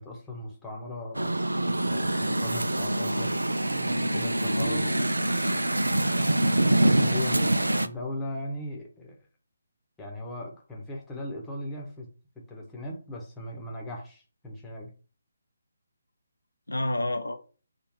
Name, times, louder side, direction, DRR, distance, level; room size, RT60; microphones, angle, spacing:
voice 1, 0.0-1.4 1.9-3.4 3.7-4.8 6.8-7.5 7.8-9.2 10.0-12.1 12.5-14.9, left 1 dB, 10° left, 1.0 m, -38 dB
sound 1, 1.1-7.9, right 1 dB, 85° right, 0.4 m, -25 dB
voice 2, 4.6-5.1 7.0-7.7 16.7-17.4, left 1 dB, 85° left, 0.7 m, -31 dB
3.5 x 2.4 x 4.4 m
figure-of-eight pair, 145°, 0 cm